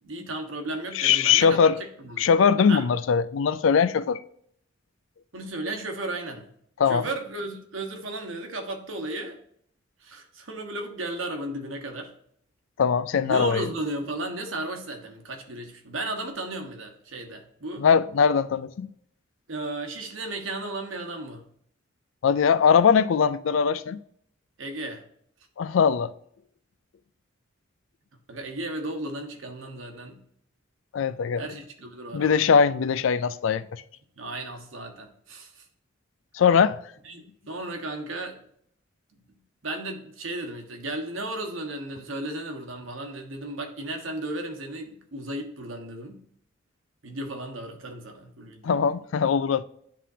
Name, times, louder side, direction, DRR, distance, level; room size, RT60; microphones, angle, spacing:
voice 1, 0.0-2.3 2.7-2.9 5.3-6.5 6.9-9.4 10.0-12.1 13.2-17.9 19.5-21.4 24.6-25.0 28.3-30.2 31.4-32.4 34.2-35.6 37.0-38.4 39.6-46.2 47.0-48.8, right 2 dB, 85° right, 1.3 m, -34 dB
voice 2, 0.9-1.8 2.2-4.2 6.8-7.0 12.8-13.6 17.8-18.9 22.2-24.0 25.6-26.1 30.9-31.4 32.1-33.6 36.3-36.8 48.6-49.6, left 6 dB, 75° left, 0.4 m, -21 dB
10.5 x 3.7 x 2.7 m
head